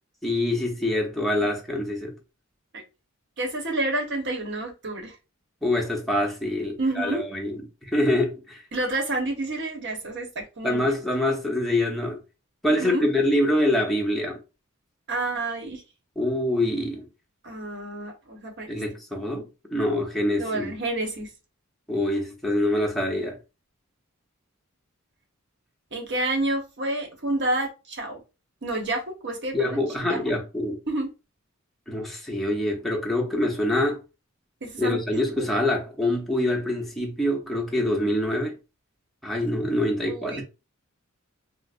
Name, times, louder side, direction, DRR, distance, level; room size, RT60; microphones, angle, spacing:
voice 1, 0.2-2.1 5.6-8.6 10.6-12.2 12.6-14.4 16.2-17.1 18.7-20.7 21.9-23.4 29.5-30.8 31.9-34.0 34.8-38.6 39.2-40.4, left 1 dB, ahead, 0.8 m, -25 dB
voice 2, 3.4-5.1 6.8-7.2 8.7-10.9 12.7-13.0 15.1-15.8 17.4-18.7 20.4-21.3 25.9-28.2 28.6-29.8 30.1-30.4 30.9-31.1 34.6-35.0 35.4-35.5 40.0-40.4, right 2 dB, 55° right, 1.0 m, -29 dB
4.8 x 2.0 x 2.5 m
head